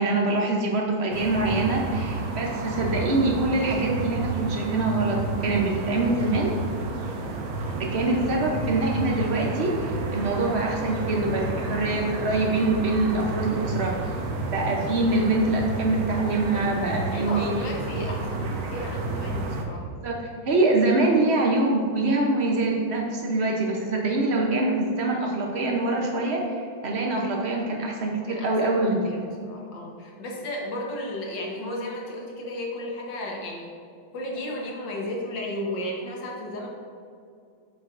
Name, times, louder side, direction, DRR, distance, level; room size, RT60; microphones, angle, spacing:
voice 1, 0.0-6.5 7.8-13.9 14.5-17.5 17.9-18.0 20.0-20.2 20.4-29.3, right 2 dB, 65° right, 0 dB, 0.6 m, -24 dB
sound 1, 1.1-19.6, right 3 dB, 90° right, 1.6 m, -31 dB
voice 2, 17.1-19.8 28.3-33.7 34.1-36.7, left 1 dB, 65° left, -1 dB, 1.7 m, -34 dB
8.0 x 6.2 x 2.5 m, 2.3 s
omnidirectional pair, 2.2 m